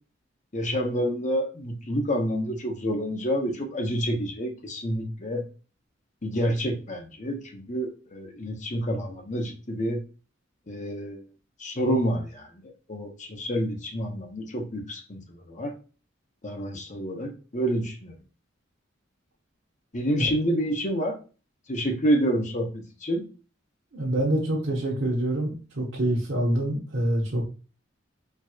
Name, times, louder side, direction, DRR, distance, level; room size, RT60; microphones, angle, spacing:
voice 1, 0.5-5.4 6.2-10.0 10.7-11.2 11.6-15.7 16.4-18.1 19.9-21.1 21.7-23.2, equal, 40° left, 2 dB, 0.9 m, -28 dB
voice 2, 23.9-27.4, right 1 dB, 65° right, -5 dB, 1.0 m, -26 dB
4.6 x 3.0 x 2.3 m, 0.34 s
head